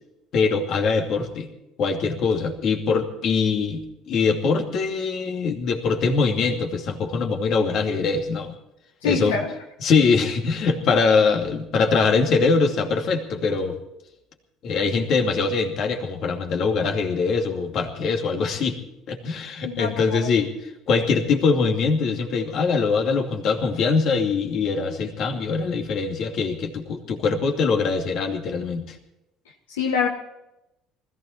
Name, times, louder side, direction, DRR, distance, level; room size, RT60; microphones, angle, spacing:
voice 1, 0.3-1.5 1.8-8.5 9.0-9.4 9.8-13.8 14.6-18.8 19.1-29.0, left 4 dB, 55° left, 3 dB, 2.6 m, -23 dB
voice 2, 9.0-9.4 19.6-20.3 29.7-30.1, left 5 dB, 85° left, 1 dB, 1.5 m, -25 dB
20.0 x 15.0 x 4.4 m, 0.89 s
hypercardioid pair, 65°, 0 cm